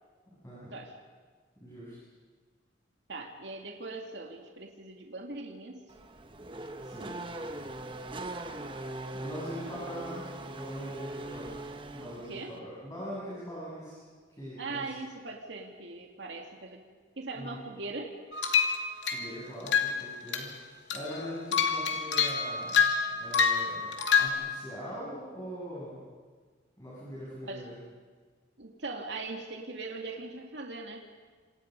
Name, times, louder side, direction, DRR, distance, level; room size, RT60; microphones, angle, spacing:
voice 1, 1.6-2.0 6.8-7.1 9.1-11.7 11.9-14.0 14.3-14.8 17.4-17.6 19.1-20.5 20.9-26.0 26.8-27.8, equal, 20° left, -9 dB, 8.0 m, -42 dB
voice 2, 3.1-5.9 9.7-10.2 12.2-12.6 14.6-16.8 17.2-18.2 27.4-27.7 28.6-31.0, right 3 dB, 75° right, 2 dB, 2.3 m, -40 dB
Race car auto racing / Accelerating revving vroom, 5.9-12.6, right 2 dB, 25° right, 1.2 m, -41 dB
sound 1, 18.3-19.3 19.7-20.0 20.3-20.6 20.9-24.3, left 6 dB, 80° left, 2.5 m, -27 dB
27.0 x 27.0 x 5.4 m, 1.5 s
head